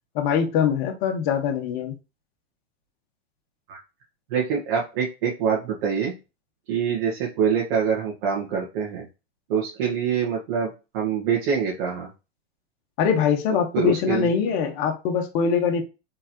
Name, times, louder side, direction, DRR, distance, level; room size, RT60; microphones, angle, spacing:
voice 1, 0.1-1.9 13.0-15.8, left 7 dB, 45° left, 3 dB, 1.1 m, -23 dB
voice 2, 4.3-6.1 6.7-9.1 9.5-12.1 13.7-14.3, right 7 dB, 55° right, -3 dB, 1.7 m, -25 dB
4.4 x 3.9 x 3.0 m, 0.28 s
hypercardioid pair, 140°, 32 cm